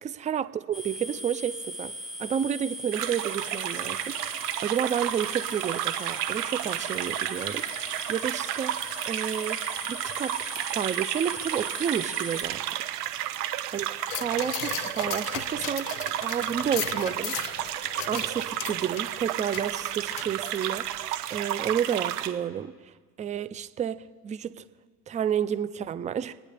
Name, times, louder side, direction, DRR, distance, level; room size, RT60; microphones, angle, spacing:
voice 1, 0.0-1.9 2.2-7.8 8.1-12.6 13.7-13.9 14.2-17.4 18.1-24.6 25.1-26.3, right 8 dB, 15° right, 14 dB, 0.4 m, -31 dB
sound 1, 0.7-12.4, left 1 dB, ahead, 3.9 m, -39 dB
sound 2, 2.9-22.3, right 12 dB, 75° right, 1.2 m, -32 dB
sound 3, 14.1-21.0 21.4-21.5, left 15 dB, 65° left, 0.8 m, -37 dB
26.5 x 9.9 x 3.4 m, 1.5 s
hypercardioid pair, 90°, 46 cm